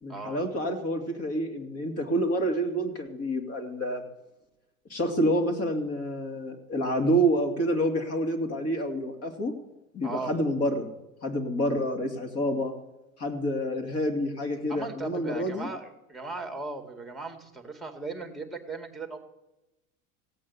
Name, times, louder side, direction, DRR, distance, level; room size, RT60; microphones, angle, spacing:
voice 1, 0.0-4.0 4.9-9.5 9.9-10.9 11.2-12.7 13.2-15.7, equal, 35° left, 5 dB, 2.5 m, -28 dB
voice 2, 10.0-10.3 14.7-19.2, right 3 dB, ahead, 5 dB, 2.1 m, -37 dB
16.5 x 8.6 x 7.1 m, 0.97 s
hypercardioid pair, 85°, 43 cm